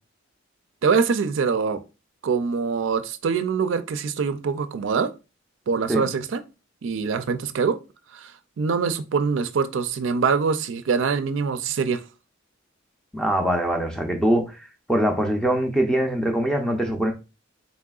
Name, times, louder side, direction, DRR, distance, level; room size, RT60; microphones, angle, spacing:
voice 1, 0.8-1.8 2.2-5.1 5.7-6.4 6.8-7.8 8.1-8.3 8.6-12.0, right 5 dB, 70° right, 0.4 m, -24 dB
voice 2, 13.1-14.6 14.9-17.1, right 1 dB, 5° left, 0.5 m, -22 dB
4.0 x 3.7 x 2.3 m
head